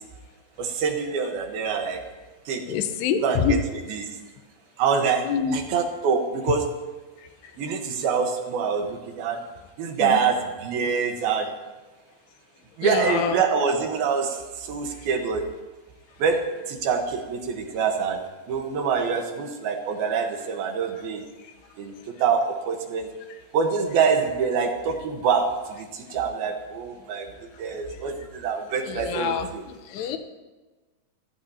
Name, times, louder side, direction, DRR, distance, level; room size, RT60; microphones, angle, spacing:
voice 1, 0.6-2.0 2.5-2.6 3.2-4.1 4.8-6.7 7.6-9.4 9.8-11.5 12.8-15.4 16.2-18.2 18.5-21.2 21.8-21.9 22.2-23.1 23.5-27.3 27.6-29.6, right 6 dB, 70° right, 4 dB, 3.0 m, -25 dB
voice 2, 2.7-3.6 5.2-5.6 10.0-10.2 12.8-13.4 28.8-29.5 29.9-30.2, left 7 dB, 85° left, 8 dB, 3.0 m, -25 dB
26.0 x 14.5 x 2.9 m, 1.2 s
omnidirectional pair, 4.8 m